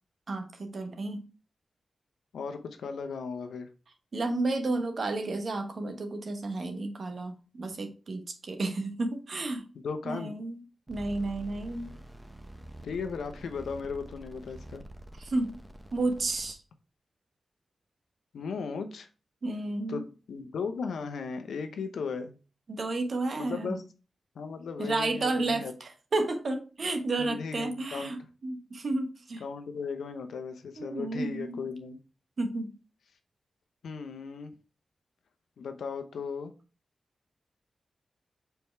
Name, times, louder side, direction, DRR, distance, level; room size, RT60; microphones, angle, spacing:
voice 1, 0.3-1.3 4.1-9.7 10.0-10.6 10.9-11.9 15.2-15.6 15.9-16.6 19.4-20.0 22.7-23.8 24.8-29.4 30.8-31.6 32.4-32.8, right 2 dB, 65° right, 1.2 m, -32 dB
voice 2, 2.3-3.7 9.8-10.3 12.8-14.9 18.3-19.1 19.9-22.4 23.4-23.8 24.3-25.7 27.2-28.1 29.4-32.0 33.8-34.5 35.6-36.5, left 5 dB, 85° left, 0.8 m, -36 dB
sound 1, 10.9-16.5, right 1 dB, 10° right, 1.1 m, -47 dB
5.4 x 4.5 x 4.5 m
cardioid pair, 45°, 0 cm